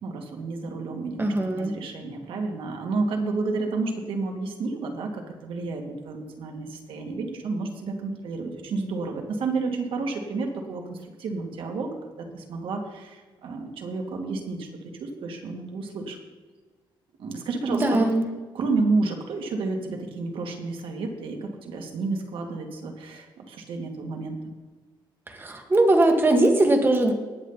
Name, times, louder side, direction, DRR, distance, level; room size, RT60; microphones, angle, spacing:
voice 1, 0.0-14.7 15.0-16.2 17.2-18.1 18.5-24.4, right 3 dB, 75° right, 3 dB, 2.3 m, -30 dB
voice 2, 1.2-1.7 17.7-18.3 25.3-27.1, right 1 dB, 25° right, 4 dB, 1.9 m, -20 dB
20.0 x 7.6 x 4.1 m, 1.4 s
cardioid pair, 120°, 9 cm